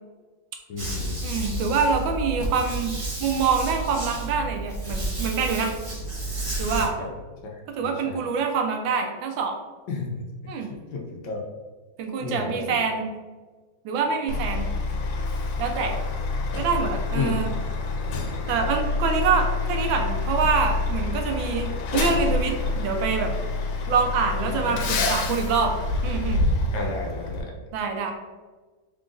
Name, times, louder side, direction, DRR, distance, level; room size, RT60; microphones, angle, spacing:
voice 1, 0.7-1.2 6.7-7.1 7.8-8.2 9.9-10.2 10.7-11.4 12.2-12.7 15.8-15.9 17.1-17.4 18.6-18.7 24.5-25.2 26.7-27.5, left 3 dB, 70° left, 0 dB, 1.2 m, -32 dB
sound 1, 0.8-6.9, right 2 dB, 45° right, 0.4 m, -31 dB
voice 2, 1.2-3.0 3.2-5.7 6.6-7.0 7.7-9.6 10.5-10.7 12.0-13.1 13.8-14.7 15.6-15.9 16.5-17.5 18.5-23.3 23.9-25.7 26.0-26.4 27.7-28.1, right 5 dB, 80° right, 4 dB, 1.4 m, -25 dB
Truck, 14.3-27.4, left 3 dB, 90° left, 1.4 m, -27 dB
3.8 x 2.4 x 3.7 m, 1.3 s
omnidirectional pair, 2.2 m